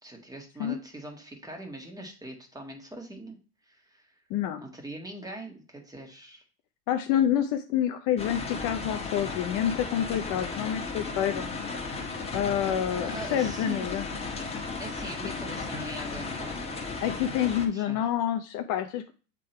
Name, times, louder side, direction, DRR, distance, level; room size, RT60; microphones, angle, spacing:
voice 1, 0.0-3.4 3.6-4.1 4.6-6.4 12.5-12.7 13.0-14.0 14.8-17.0 17.5-18.1, right 1 dB, 10° right, 2 dB, 1.6 m, -42 dB
voice 2, 4.3-4.6 6.9-11.5 12.3-14.0 17.0-19.1, left 10 dB, 40° left, 7 dB, 0.7 m, -28 dB
sound 1, 8.2-17.7, left 4 dB, 15° left, 1.4 m, -35 dB
7.5 x 3.8 x 4.4 m, 0.36 s
hypercardioid pair, 115°, 46 cm